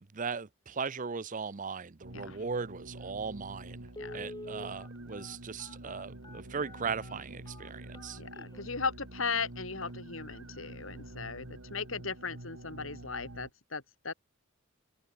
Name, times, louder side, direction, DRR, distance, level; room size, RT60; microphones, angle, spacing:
voice 1, 0.1-3.9 4.1-8.2, right 5 dB, 40° right, 0.7 m, -38 dB
sound 1, 2.0-13.5, right 1 dB, 85° right, 2.3 m, -47 dB
Telephone, 3.2-3.3 3.9-8.8 9.3-9.4 9.7-9.9 10.3-10.6 10.9-11.0, left 1 dB, 20° left, 2.1 m, -47 dB
voice 2, 8.2-14.1, left 5 dB, 70° left, 3.9 m, -37 dB
head